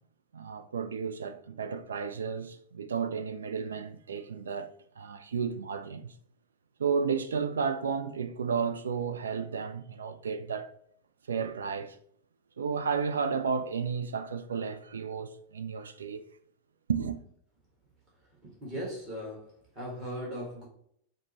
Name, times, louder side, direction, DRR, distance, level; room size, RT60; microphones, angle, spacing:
voice 1, 0.3-6.1 6.8-10.7 11.3-12.0 12.6-16.2 16.9-17.2, right 6 dB, 70° right, 0.3 m, -32 dB
voice 2, 18.4-20.7, equal, 25° right, 1.3 m, -38 dB
5.1 x 2.0 x 4.0 m
figure-of-eight pair, 90°, 0 cm